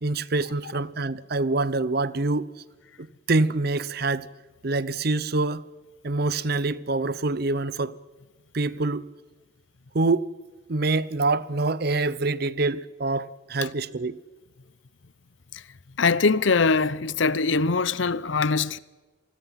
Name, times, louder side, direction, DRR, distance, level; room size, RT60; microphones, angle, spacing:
voice 1, 0.0-2.5 3.0-4.3 4.6-5.6 6.0-7.9 8.5-9.1 9.9-10.3 10.7-14.2, right 3 dB, 50° right, 0.7 m, -25 dB
voice 2, 16.0-18.8, left 4 dB, 75° left, 0.7 m, -22 dB
27.0 x 20.5 x 5.8 m
head